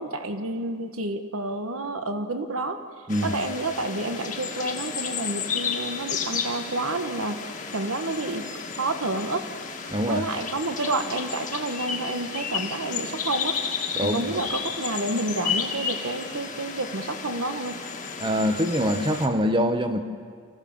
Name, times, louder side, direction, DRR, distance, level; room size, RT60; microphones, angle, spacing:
voice 1, 0.0-2.8 3.2-7.4 7.7-8.5 8.8-9.4 10.1-13.6 14.0-17.8, right 2 dB, 85° right, 8 dB, 1.3 m, -29 dB
sound 1, 3.1-19.3, left 6 dB, 35° left, 1.5 m, -32 dB
voice 2, 9.9-10.2 13.9-14.4 18.2-20.0, equal, 20° right, 8 dB, 1.0 m, -24 dB
25.0 x 16.0 x 7.1 m, 2.1 s
head